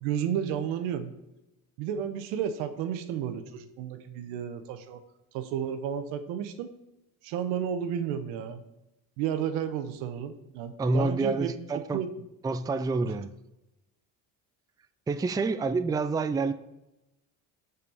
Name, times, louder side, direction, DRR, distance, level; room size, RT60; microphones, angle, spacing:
voice 1, 0.0-1.1 1.8-5.0 5.3-6.7 7.2-8.6 9.2-12.1, right 9 dB, 90° right, 9 dB, 1.0 m, -32 dB
voice 2, 10.8-12.0 12.4-13.3 15.1-16.5, right 3 dB, 10° right, 11 dB, 0.4 m, -28 dB
6.7 x 5.4 x 5.5 m, 0.95 s
supercardioid pair, 90°, 43 cm